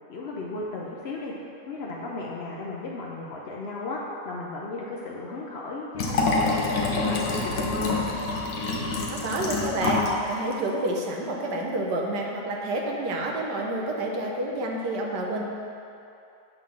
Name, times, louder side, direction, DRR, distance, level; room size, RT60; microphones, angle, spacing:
voice 1, 0.1-1.3 1.7-4.0 4.2-6.7 7.1-8.0, left 3 dB, 75° left, -3 dB, 0.6 m, -35 dB
Liquid, 5.9-10.2 10.5-10.6, left 3 dB, 55° left, 1.1 m, -26 dB
voice 2, 9.1-10.0 10.3-15.5, right 1 dB, 70° right, 0 dB, 1.4 m, -29 dB
7.9 x 3.7 x 6.2 m, 2.6 s
omnidirectional pair, 2.0 m